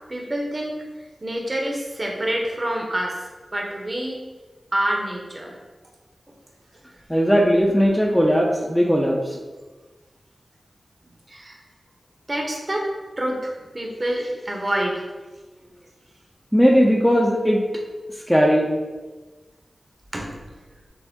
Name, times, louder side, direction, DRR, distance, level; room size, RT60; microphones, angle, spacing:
voice 1, 0.1-0.7 1.2-3.2 3.5-4.2 4.7-5.5 11.3-11.6 12.3-12.9 13.2-15.1 20.1-20.3, right 1 dB, 35° right, 0 dB, 0.9 m, -27 dB
voice 2, 7.1-9.2 16.5-17.6 18.3-18.6, equal, 5° left, -1 dB, 0.6 m, -17 dB
6.2 x 2.1 x 3.6 m, 1.2 s
cardioid pair, 55°, 0 cm